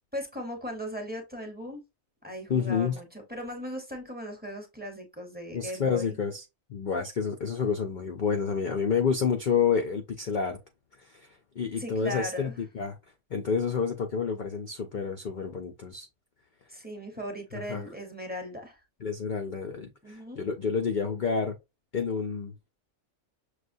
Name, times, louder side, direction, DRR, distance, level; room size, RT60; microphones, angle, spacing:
voice 1, 0.1-1.8 2.2-6.2 11.8-12.5 16.7-18.8 20.0-20.4, equal, 10° right, 0.8 m, -38 dB
voice 2, 2.5-3.0 5.5-6.4 6.7-10.6 11.0-11.3 11.6-13.0 13.3-16.1 17.7-17.8 19.0-21.6 21.9-22.5, left 6 dB, 60° left, 0.5 m, -29 dB
6.4 x 2.3 x 2.6 m
omnidirectional pair, 1.4 m